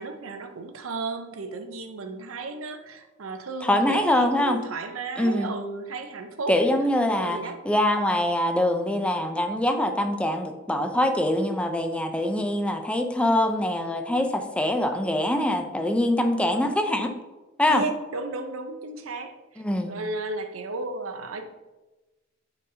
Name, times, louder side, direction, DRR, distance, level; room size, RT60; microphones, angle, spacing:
voice 1, 0.0-6.5 7.2-7.6 17.7-19.3 19.9-21.4, right 3 dB, 90° right, 7 dB, 0.7 m, -34 dB
voice 2, 3.6-4.6 5.2-5.5 6.5-17.1 17.6-17.8 19.6-19.9, left 1 dB, 5° left, 5 dB, 0.5 m, -24 dB
9.7 x 4.1 x 2.8 m, 1.1 s
head